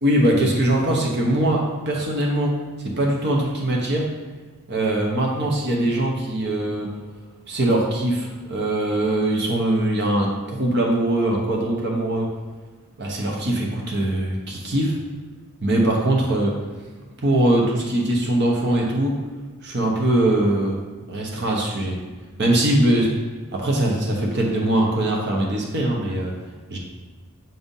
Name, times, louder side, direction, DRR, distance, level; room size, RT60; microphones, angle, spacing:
voice 1, 0.0-2.5 2.8-4.1 4.7-6.9 7.5-12.3 13.0-15.0 15.6-16.5 17.2-19.1 19.6-20.8 21.1-22.0 22.4-23.1 23.5-26.3 26.7-26.8, right 1 dB, 50° right, -1 dB, 0.9 m, -21 dB
7.6 x 2.7 x 5.3 m, 1.4 s
head